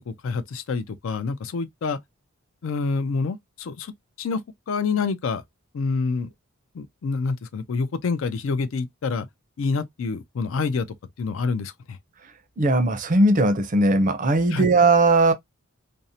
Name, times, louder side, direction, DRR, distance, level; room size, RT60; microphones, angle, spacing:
voice 1, 0.0-2.0 2.6-3.9 4.2-4.4 4.7-5.4 5.7-6.3 6.7-9.3 9.6-10.9 11.2-12.0 14.5-14.7, left 4 dB, 65° left, 0.4 m, -27 dB
voice 2, 12.6-15.3, right 2 dB, 40° right, 0.5 m, -18 dB
2.5 x 2.0 x 2.6 m
head